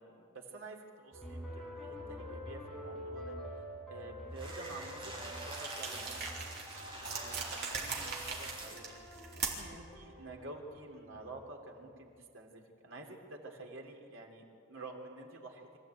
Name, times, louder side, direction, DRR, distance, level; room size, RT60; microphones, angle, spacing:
voice 1, 0.0-3.6 3.9-8.9 9.3-15.7, right 2 dB, 85° right, 2 dB, 3.2 m, -50 dB
sound 1, 1.1-11.3, equal, 5° left, 5.5 m, -47 dB
sound 2, 4.3-8.9, right 2 dB, 25° right, 5.8 m, -46 dB
sound 3, 5.5-9.8, right 5 dB, 55° right, 3.6 m, -41 dB
24.5 x 15.0 x 9.1 m, 2.4 s
head